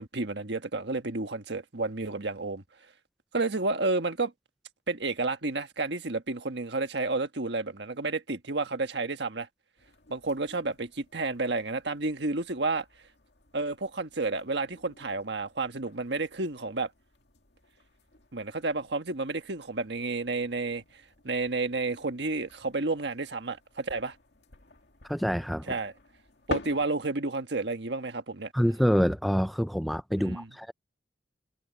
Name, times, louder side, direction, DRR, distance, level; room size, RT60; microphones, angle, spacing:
voice 1, 0.0-2.6 3.3-4.3 4.9-9.5 10.1-12.8 13.5-16.9 18.3-20.8 21.2-24.1 25.7-25.9 26.5-28.5 30.2-30.5, right 3 dB, 65° right, 1.5 m, -31 dB
sound 1, 9.8-26.9, left 2 dB, 65° left, 2.4 m, -47 dB
voice 2, 25.1-25.7 28.5-30.7, equal, ahead, 0.3 m, -26 dB
head